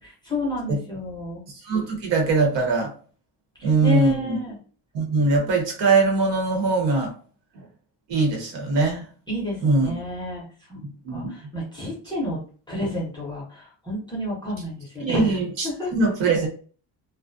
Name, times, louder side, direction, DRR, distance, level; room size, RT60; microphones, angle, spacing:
voice 1, 0.0-1.4 3.6-4.6 9.3-10.8 11.1-12.4 12.7-15.4 15.6-15.9, left 1 dB, 10° left, -6 dB, 0.5 m, -30 dB
voice 2, 1.6-2.9 3.6-4.4 4.9-7.1 8.1-9.0 9.6-9.9 11.0-11.3 15.0-16.5, right 3 dB, 70° right, 2 dB, 1.0 m, -22 dB
2.3 x 2.1 x 2.5 m, 0.41 s
cardioid pair, 180°, 44 cm